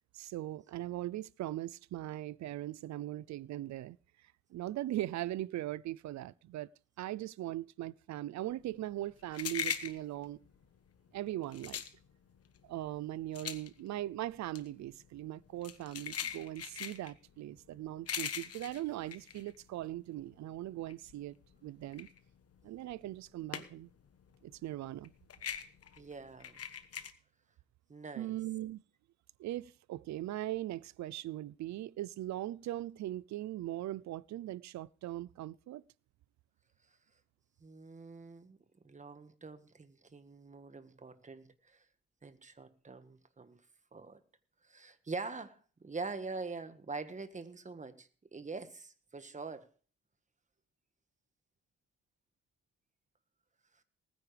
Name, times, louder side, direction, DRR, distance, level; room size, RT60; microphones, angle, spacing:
voice 1, 0.1-4.0 4.5-6.7 7.0-10.4 11.1-11.8 12.7-21.4 21.6-22.1 22.6-23.9 24.4-25.1 28.2-28.8 29.4-35.8, right 14 dB, 65° right, 0.5 m, -40 dB
sound 1, 8.6-20.2 20.6-24.0 24.3-27.1, left 8 dB, 55° left, 1.3 m, -41 dB
voice 2, 26.0-26.6 27.9-28.3 37.6-38.6 38.8-41.8 42.2-43.6 43.9-44.2 44.6-49.7, right 3 dB, 25° right, 1.5 m, -44 dB
19.5 x 9.6 x 3.4 m
cardioid pair, 90°, 30 cm